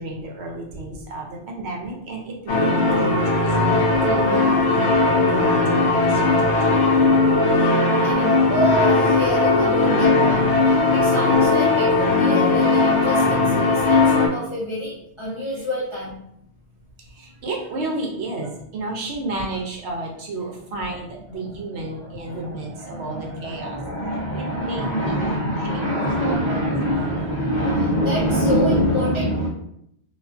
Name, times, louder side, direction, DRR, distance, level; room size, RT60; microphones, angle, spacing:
voice 1, 0.0-6.6 17.0-23.8 24.3-25.1 25.7-25.9 26.2-27.2, right 2 dB, 70° right, 1 dB, 0.8 m, -32 dB
sound 1, 2.5-14.3, left 3 dB, 70° left, 0.8 m, -18 dB
voice 2, 6.9-7.5 7.9-16.2 21.4-29.5, equal, 45° left, -7 dB, 0.4 m, -26 dB
2.3 x 2.3 x 2.4 m, 0.73 s
omnidirectional pair, 1.2 m